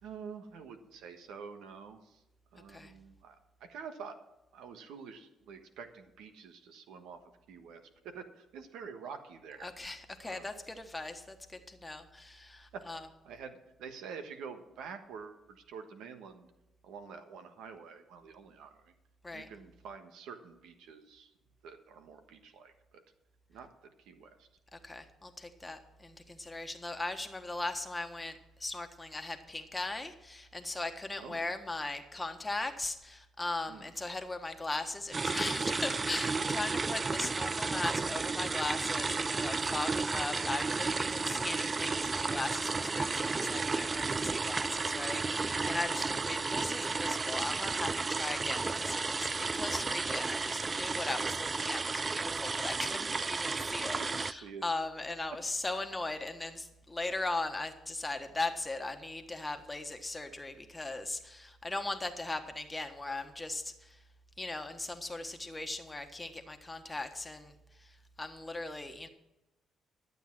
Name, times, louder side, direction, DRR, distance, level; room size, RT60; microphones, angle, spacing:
voice 1, 0.0-2.2 2.5-4.1 4.5-7.2 7.5-9.7 10.2-10.5 12.7-12.8 13.2-16.5 16.8-18.9 19.3-21.3 21.6-23.0 23.5-24.5 31.2-31.4 33.7-33.9 46.0-46.1 53.7-54.6, right 6 dB, 90° right, 7 dB, 1.2 m, -48 dB
voice 2, 9.6-13.1 19.2-19.5 24.7-64.0 64.4-69.1, left 2 dB, 15° left, 6 dB, 1.3 m, -38 dB
sound 1, 35.1-54.3, right 4 dB, 30° right, 0.3 m, -33 dB
12.0 x 8.0 x 6.0 m, 0.93 s
cardioid pair, 90°, 0 cm